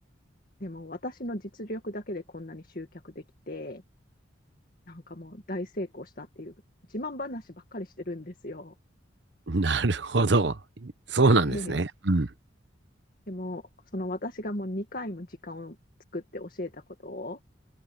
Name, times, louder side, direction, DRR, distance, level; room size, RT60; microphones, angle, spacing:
voice 1, 0.6-3.8 4.9-6.5 6.9-8.7 11.4-11.8 13.3-13.6 13.9-15.8 16.1-17.4, left 1 dB, 45° left, 2.1 m, -37 dB
voice 2, 9.5-12.3, right 3 dB, 60° right, 1.0 m, -24 dB
head